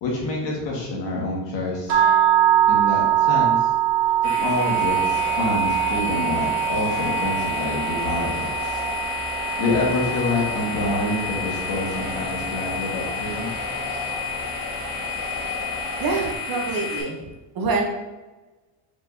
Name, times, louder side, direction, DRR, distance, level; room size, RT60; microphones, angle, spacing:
voice 1, 0.0-2.0 2.7-3.7 4.4-8.8 9.6-13.5, left 2 dB, 60° left, -2 dB, 1.4 m, -27 dB
sound 1, 1.9-12.0, right 11 dB, 80° right, 1.2 m, -23 dB
sound 2, 4.2-17.0, left 6 dB, 25° left, 0.8 m, -31 dB
sound 3, 4.7-16.4, left 2 dB, 10° right, 0.9 m, -34 dB
voice 2, 16.0-17.8, right 4 dB, 45° right, 1 dB, 0.8 m, -26 dB
5.0 x 3.6 x 2.6 m, 1.1 s
cardioid pair, 150°, 50 cm